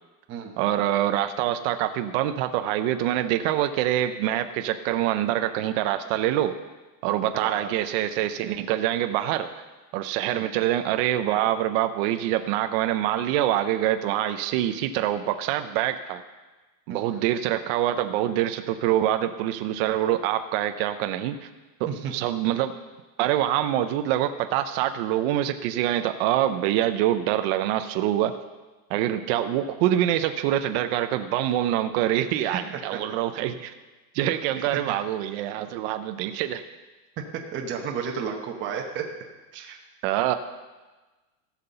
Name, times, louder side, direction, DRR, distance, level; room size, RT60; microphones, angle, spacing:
voice 1, 0.6-6.5 7.0-9.5 9.9-16.2 16.9-21.5 22.1-22.7 23.2-28.3 28.9-33.7 34.1-36.6 40.0-40.3, right 12 dB, 40° right, 8 dB, 0.5 m, -25 dB
voice 2, 7.3-7.7 10.3-10.5 16.9-17.1 21.9-22.1 32.4-32.6 32.9-33.0 37.5-39.0 39.5-39.8, right 7 dB, 25° right, 1 dB, 0.9 m, -32 dB
15.0 x 5.9 x 6.8 m, 1.2 s
supercardioid pair, 155°, 50 cm